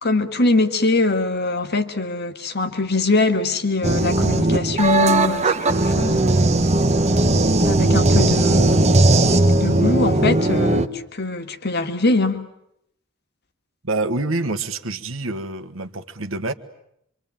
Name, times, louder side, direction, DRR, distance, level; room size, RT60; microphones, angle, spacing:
voice 1, 0.0-6.3 7.6-8.8 9.6-12.4, left 3 dB, 50° left, 7 dB, 2.0 m, -22 dB
sound 1, 3.8-10.9, right 2 dB, 35° right, 1.1 m, -17 dB
voice 2, 13.8-16.5, right 2 dB, 70° right, 9 dB, 1.6 m, -26 dB
26.5 x 25.5 x 8.9 m, 0.76 s
head